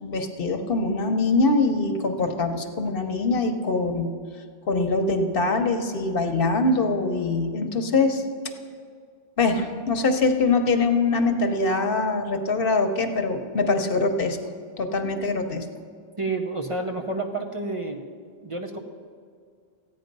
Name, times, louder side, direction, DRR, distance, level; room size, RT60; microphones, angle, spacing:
voice 1, 0.0-4.1 4.7-8.2 9.4-14.4 14.8-15.6, left 3 dB, 60° left, 6 dB, 1.0 m, -23 dB
voice 2, 16.2-18.0 18.4-18.8, right 2 dB, 35° right, 2 dB, 0.8 m, -29 dB
14.0 x 9.2 x 5.3 m, 2.2 s
omnidirectional pair, 1.1 m